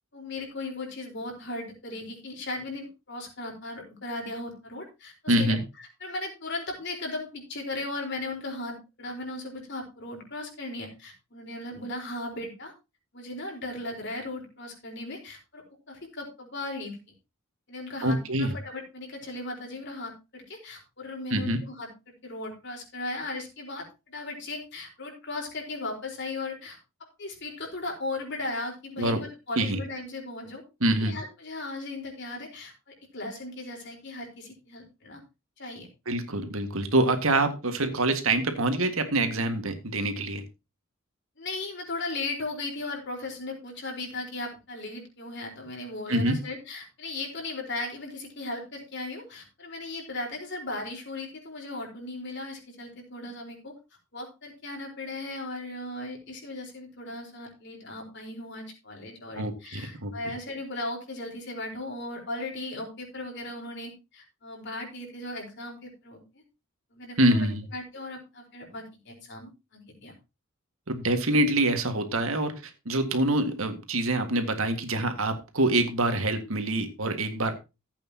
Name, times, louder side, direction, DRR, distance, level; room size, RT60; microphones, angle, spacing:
voice 1, 0.1-12.7 13.1-17.0 17.7-21.9 22.2-30.6 31.0-35.2 35.6-35.9 41.4-53.7 54.1-66.4 66.9-70.1, left 2 dB, 55° left, 1 dB, 4.3 m, -37 dB
voice 2, 5.3-5.6 18.0-18.5 21.3-21.6 29.0-29.2 29.6-29.8 30.8-31.2 36.1-40.4 46.1-46.4 59.4-60.1 67.2-67.6 70.9-77.5, right 1 dB, 75° right, 7 dB, 1.9 m, -25 dB
15.0 x 8.5 x 2.9 m, 0.26 s
head